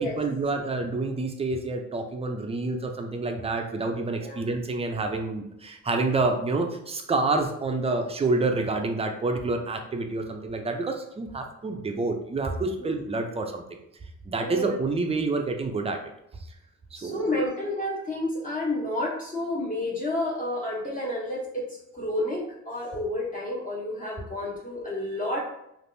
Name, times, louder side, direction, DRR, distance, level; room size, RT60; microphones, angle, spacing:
voice 1, 0.0-13.8 14.3-16.0 16.9-17.4, right 3 dB, 20° right, 4 dB, 0.5 m, -28 dB
voice 2, 14.4-14.7 16.9-25.4, left 1 dB, 25° left, -4 dB, 0.8 m, -30 dB
3.3 x 2.5 x 2.7 m, 0.80 s
cardioid pair, 90°, 30 cm